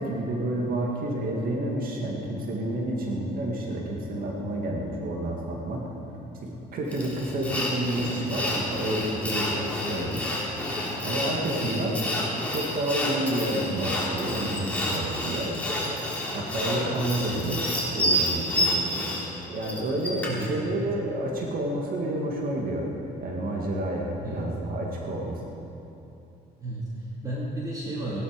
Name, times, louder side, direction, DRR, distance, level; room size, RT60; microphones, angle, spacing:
voice 1, 0.0-5.9 6.4-10.4 11.0-12.0 12.5-15.5 16.3-17.7 17.9-18.7 19.5-22.9 23.2-25.4, right 1 dB, 60° right, -1 dB, 2.1 m, -29 dB
Sawing, 6.9-20.5, left 1 dB, 10° left, 3.4 m, -29 dB
voice 2, 11.6-11.9 20.2-20.5 24.2-24.4 26.6-28.2, right 1 dB, 20° right, -6 dB, 2.5 m, -33 dB
17.0 x 11.5 x 5.2 m, 2.9 s
cardioid pair, 110°, 17 cm